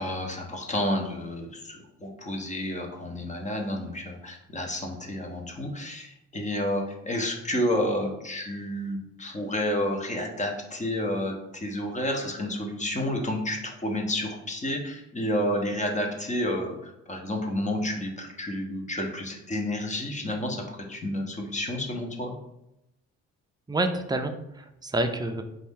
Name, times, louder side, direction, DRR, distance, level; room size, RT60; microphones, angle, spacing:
voice 1, 0.0-22.3, left 1 dB, 25° left, 2 dB, 0.9 m, -30 dB
voice 2, 23.7-25.4, right 2 dB, 15° right, 6 dB, 0.4 m, -28 dB
4.2 x 2.6 x 3.6 m, 0.86 s
cardioid pair, 90°, 30 cm